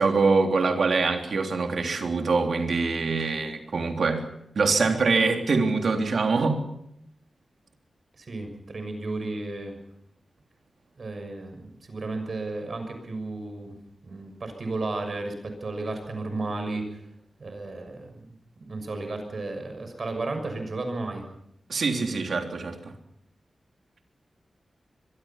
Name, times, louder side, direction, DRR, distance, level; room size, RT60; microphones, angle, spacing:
voice 1, 0.0-4.2 4.6-6.6 21.7-22.8, right 4 dB, 65° right, 3 dB, 3.5 m, -24 dB
voice 2, 8.1-9.8 11.0-13.8 14.0-17.1 17.4-18.3 18.7-21.2, right 2 dB, 50° right, 6 dB, 6.4 m, -33 dB
24.5 x 22.5 x 5.9 m, 0.75 s
wide cardioid pair, 140°, 0 cm